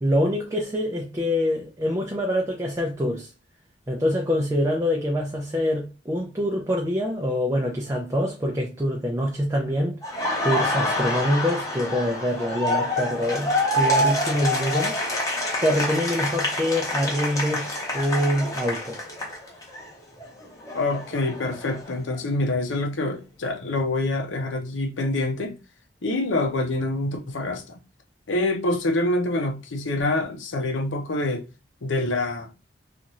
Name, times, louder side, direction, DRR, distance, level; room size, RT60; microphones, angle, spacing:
voice 1, 0.0-3.3 3.9-10.0 10.4-15.0 15.6-19.0, equal, 15° right, 0.4 m, -25 dB
Laughter, 10.0-19.8 20.2-22.2, left 1 dB, 20° left, 0.8 m, -27 dB
voice 2, 20.7-25.6 26.0-27.8 28.3-31.4 31.8-32.5, left 2 dB, 90° left, 0.7 m, -26 dB
2.7 x 2.5 x 3.0 m
head